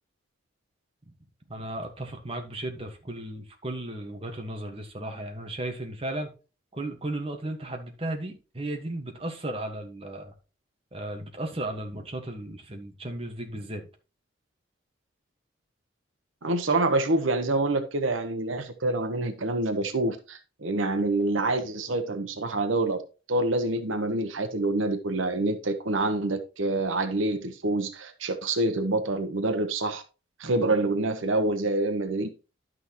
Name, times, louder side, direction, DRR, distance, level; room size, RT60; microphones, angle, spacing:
voice 1, 1.5-6.3 6.7-10.3 10.9-13.9 30.4-30.6, right 1 dB, 30° right, 1.5 m, -35 dB
voice 2, 16.4-23.0 23.3-30.0 30.4-32.3, right 2 dB, 85° right, 1.0 m, -26 dB
11.0 x 6.2 x 3.0 m
head